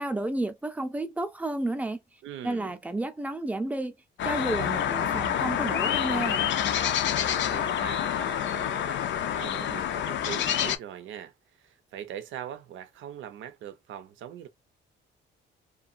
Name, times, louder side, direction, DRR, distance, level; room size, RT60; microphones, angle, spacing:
voice 1, 0.0-2.0 2.4-3.9 4.2-6.5, right 2 dB, 5° right, 0.5 m, -31 dB
voice 2, 2.2-2.8 7.1-14.5, right 10 dB, 75° right, 0.6 m, -42 dB
sound 1, 4.2-10.8, left 9 dB, 65° left, 0.5 m, -27 dB
2.7 x 2.3 x 2.6 m
cardioid pair, 90°, 20 cm